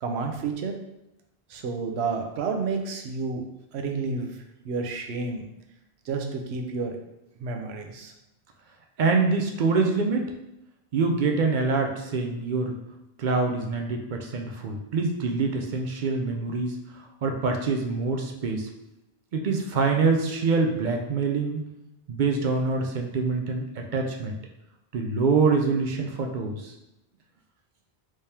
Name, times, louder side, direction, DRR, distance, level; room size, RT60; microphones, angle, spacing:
voice 1, 0.0-0.7 1.5-3.4 3.7-4.3 4.6-5.4 6.1-7.0 7.4-8.1, right 4 dB, 90° right, 4 dB, 0.8 m, -30 dB
voice 2, 9.0-10.3 10.9-12.7 13.2-18.7 19.3-21.6 22.1-24.4 24.9-26.7, right 4 dB, 60° right, 2 dB, 0.6 m, -25 dB
3.5 x 3.2 x 2.8 m, 0.88 s
omnidirectional pair, 1.1 m